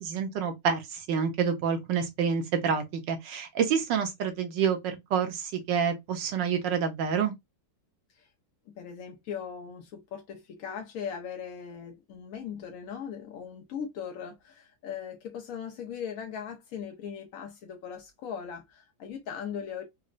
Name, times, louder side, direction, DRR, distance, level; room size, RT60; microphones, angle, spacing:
voice 1, 0.0-7.3, right 7 dB, 85° right, 1.4 m, -28 dB
voice 2, 8.8-19.8, left 7 dB, 70° left, 0.8 m, -39 dB
4.1 x 2.0 x 2.4 m
omnidirectional pair, 1.9 m